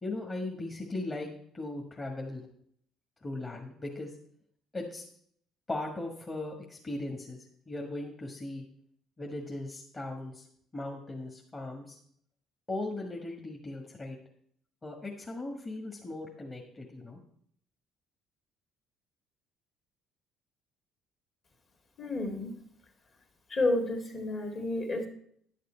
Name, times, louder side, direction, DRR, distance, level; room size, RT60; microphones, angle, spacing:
voice 1, 0.0-2.4 3.2-4.1 4.7-5.0 5.7-8.6 9.2-10.4 10.7-12.0 12.7-14.2 14.8-17.2, left 2 dB, 25° left, 0 dB, 1.5 m, -38 dB
voice 2, 22.0-22.5 23.5-25.1, left 2 dB, 45° left, 4 dB, 2.2 m, -30 dB
10.5 x 6.7 x 4.4 m, 0.66 s
supercardioid pair, 75°, 0 cm